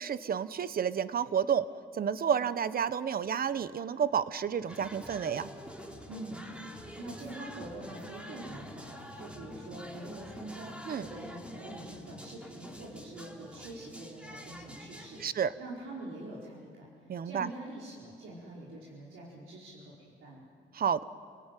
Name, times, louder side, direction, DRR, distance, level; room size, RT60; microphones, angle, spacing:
voice 1, 0.0-1.7 1.9-5.5 10.9-11.0 15.2-15.5 17.1-17.5 20.7-21.0, right 7 dB, 50° right, 15 dB, 1.0 m, -30 dB
sound 1, 4.7-15.3, equal, 5° right, 3.4 m, -46 dB
voice 2, 6.1-16.9 17.2-20.4, right 1 dB, 85° right, -5 dB, 4.7 m, -45 dB
29.0 x 18.5 x 9.2 m, 2.2 s
cardioid pair, 90°, 20 cm